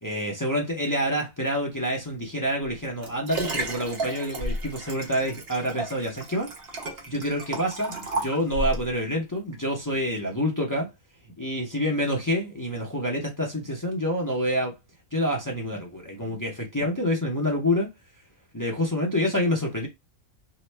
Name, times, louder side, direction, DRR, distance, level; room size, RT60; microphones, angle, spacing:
voice 1, 0.0-6.5 7.1-10.9 11.4-14.7 15.1-17.9 18.5-19.9, equal, 30° left, 0.3 m, -27 dB
Liquid, 2.6-8.9 9.5-9.6, right 2 dB, 50° right, 1.0 m, -33 dB
2.9 x 2.1 x 3.2 m
omnidirectional pair, 1.5 m